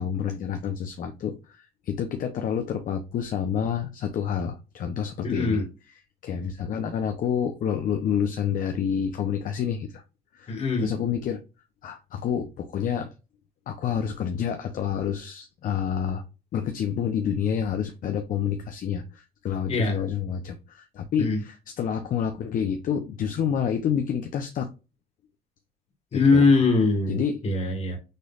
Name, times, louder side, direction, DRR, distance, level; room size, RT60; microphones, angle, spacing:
voice 1, 0.0-5.6 6.2-10.0 10.3-10.5 10.8-11.4 11.8-13.1 13.7-16.2 16.5-24.7 26.1-26.5 27.1-27.4, left 8 dB, 55° left, 0.7 m, -28 dB
voice 2, 5.2-5.6 10.5-10.9 19.7-20.0 21.2-21.4 26.1-27.2 27.4-28.0, left 3 dB, 40° left, 2.1 m, -21 dB
6.6 x 3.2 x 2.4 m
cardioid pair, 110°, 17 cm